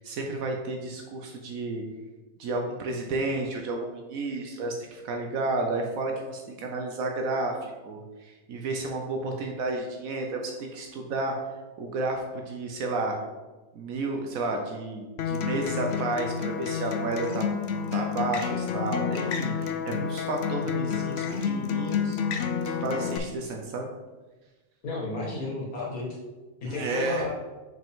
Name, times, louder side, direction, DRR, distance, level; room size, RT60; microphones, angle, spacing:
voice 1, 0.0-1.8 2.4-11.3 11.8-13.2 13.7-17.5 17.9-22.2 22.6-23.9 26.6-27.3, right 2 dB, 80° right, 2 dB, 1.2 m, -31 dB
Acoustic guitar, 15.2-23.2, left 6 dB, 60° left, 0.7 m, -29 dB
voice 2, 24.8-26.1 26.6-27.3, left 2 dB, 85° left, -3 dB, 2.2 m, -32 dB
5.9 x 5.1 x 3.6 m, 1.2 s
omnidirectional pair, 1.5 m